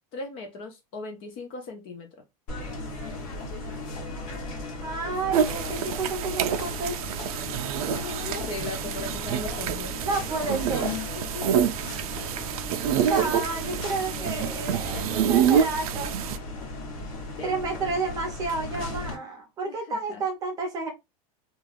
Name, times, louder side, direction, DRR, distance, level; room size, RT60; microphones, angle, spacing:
voice 1, 0.1-2.1 7.8-9.9 11.1-11.7 17.4-17.5 19.7-20.2, left 3 dB, 30° left, 0.4 m, -38 dB
sound 1, 2.5-19.1, left 2 dB, 65° left, 1.2 m, -36 dB
voice 2, 4.8-7.0 10.0-11.0 13.0-16.1 17.4-20.9, right 3 dB, 20° right, 0.6 m, -30 dB
sound 2, 5.3-16.4, right 9 dB, 80° right, 0.4 m, -27 dB
2.4 x 2.2 x 3.2 m
supercardioid pair, 175°, 18 cm